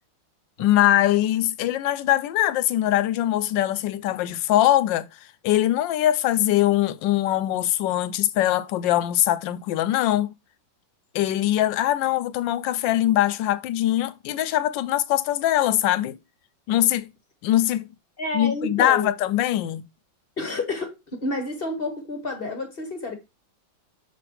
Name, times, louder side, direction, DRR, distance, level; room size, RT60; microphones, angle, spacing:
voice 1, 0.6-5.1 5.4-10.3 11.1-16.1 16.7-17.1 17.4-17.9 18.3-19.8, left 13 dB, 80° left, 1.3 m, -22 dB
voice 2, 18.2-19.1 20.4-23.1, left 2 dB, 35° left, 1.0 m, -29 dB
6.2 x 3.1 x 4.9 m
omnidirectional pair, 2.0 m